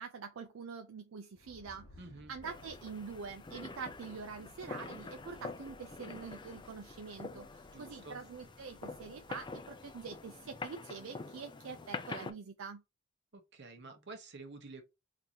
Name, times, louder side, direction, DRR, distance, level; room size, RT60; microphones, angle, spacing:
voice 1, 0.0-1.9 2.3-12.8, right 5 dB, 80° right, 0.4 m, -45 dB
sound 1, 1.3-10.9, left 1 dB, 65° left, 0.7 m, -61 dB
voice 2, 2.0-2.3 7.7-8.2 13.3-14.8, right 3 dB, 60° right, 1.0 m, -50 dB
sound 2, 2.4-12.3, left 3 dB, 25° left, 0.4 m, -46 dB
3.8 x 2.6 x 2.9 m
head